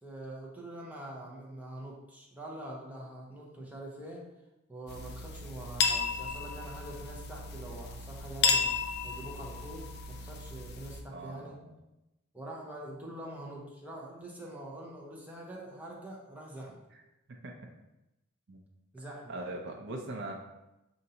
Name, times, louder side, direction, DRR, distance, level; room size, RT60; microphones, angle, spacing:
voice 1, 0.0-4.2 4.7-8.7 9.0-11.6 12.3-16.8 18.9-19.3, right 1 dB, 10° right, -3 dB, 0.7 m, -44 dB
sound 1, 4.9-11.0, left 5 dB, 55° left, 0.4 m, -33 dB
voice 2, 11.1-11.8 17.4-17.5 18.5-18.6 19.3-20.4, right 2 dB, 65° right, 0 dB, 0.5 m, -40 dB
5.2 x 2.6 x 2.8 m, 0.95 s
head